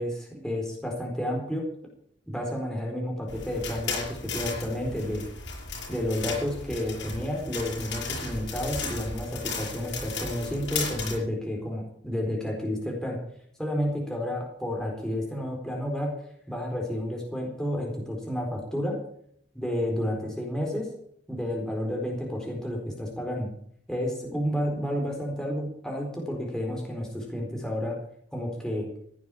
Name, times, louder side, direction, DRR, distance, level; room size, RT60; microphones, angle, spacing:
voice 1, 0.0-1.7 2.3-5.2 5.9-13.2 13.6-16.1 16.5-19.0 19.5-20.9 21.3-23.5 23.9-28.0 28.3-28.9, left 1 dB, 5° left, -1 dB, 4.2 m, -31 dB
sound 1, 3.3-11.2, left 4 dB, 85° left, 6.6 m, -35 dB
16.0 x 9.4 x 7.3 m, 0.66 s
head